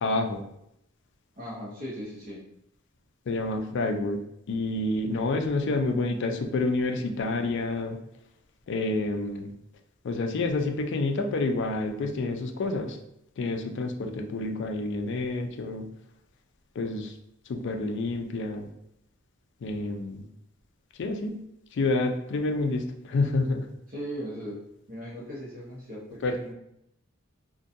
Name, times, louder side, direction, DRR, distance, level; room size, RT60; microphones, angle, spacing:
voice 1, 0.0-0.4 3.3-4.2 4.5-8.0 8.7-9.5 10.0-13.0 13.4-15.9 16.8-17.1 17.5-18.7 19.6-20.2 21.0-21.4 21.7-23.7 26.2-26.3, left 2 dB, 60° left, 4 dB, 0.3 m, -28 dB
voice 2, 1.4-2.4 23.9-24.6 24.9-26.5, equal, 40° right, -6 dB, 0.6 m, -38 dB
2.4 x 2.2 x 2.6 m, 0.79 s
head